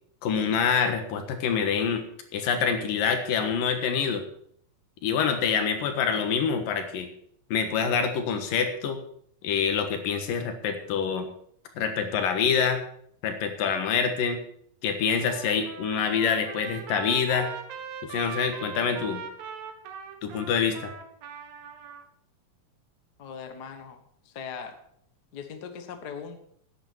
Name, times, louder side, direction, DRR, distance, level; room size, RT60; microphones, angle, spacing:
voice 1, 0.2-2.0 2.3-4.2 5.0-7.1 7.5-9.0 9.4-11.3 11.8-12.8 13.2-14.4 14.8-17.5 18.0-19.2 20.2-20.9, left 6 dB, 75° left, 7 dB, 3.1 m, -26 dB
Trumpet, 15.2-22.0, right 6 dB, 90° right, 3.1 m, -40 dB
voice 2, 23.2-24.7 25.3-26.4, left 6 dB, 50° left, 6 dB, 1.2 m, -40 dB
11.0 x 9.5 x 6.2 m, 0.64 s
omnidirectional pair, 4.0 m